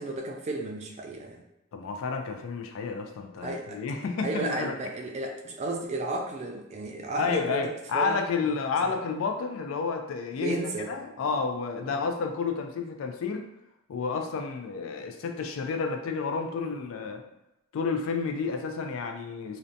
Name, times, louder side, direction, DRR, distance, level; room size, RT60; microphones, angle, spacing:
voice 1, 0.0-1.4 3.4-3.8 4.2-8.2 8.8-8.9 10.4-10.9 11.2-11.4 11.8-12.0, right 2 dB, 35° right, 1 dB, 0.3 m, -33 dB
voice 2, 1.7-4.7 7.1-10.6 10.9-13.5 13.9-17.2 17.7-19.6, left 5 dB, 80° left, 5 dB, 0.3 m, -30 dB
2.6 x 2.1 x 2.6 m, 0.91 s
head